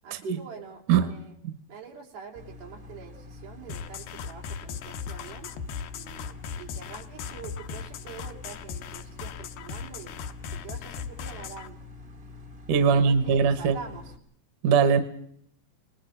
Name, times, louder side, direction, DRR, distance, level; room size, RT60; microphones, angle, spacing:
voice 1, 0.0-1.3 1.7-5.5 5.9-11.8 12.9-14.1, right 6 dB, 85° right, 1 dB, 5.5 m, -45 dB
sound 1, 2.3-14.2, left 3 dB, 40° right, 0.9 m, -46 dB
sound 2, 3.7-11.7, left 7 dB, 85° left, 2.9 m, -38 dB
voice 2, 12.7-13.8 14.6-15.0, right 6 dB, 65° right, 11 dB, 2.8 m, -21 dB
29.0 x 20.5 x 5.8 m, 0.66 s
omnidirectional pair, 4.2 m